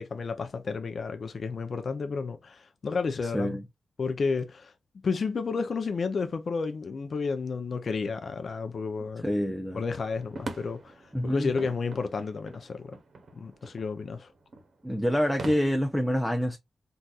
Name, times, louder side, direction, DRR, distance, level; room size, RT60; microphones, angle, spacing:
voice 1, 0.0-3.6 4.0-4.7 5.0-9.3 9.7-10.9 11.2-12.9 13.4-14.3, left 4 dB, 55° left, 0.4 m, -31 dB
voice 2, 3.2-3.6 9.2-9.8 11.1-11.5 14.8-16.6, equal, ahead, 0.5 m, -27 dB
sound 1, 9.9-15.6, right 2 dB, 65° right, 0.8 m, -43 dB
3.9 x 2.3 x 2.2 m
cardioid pair, 85°, 0 cm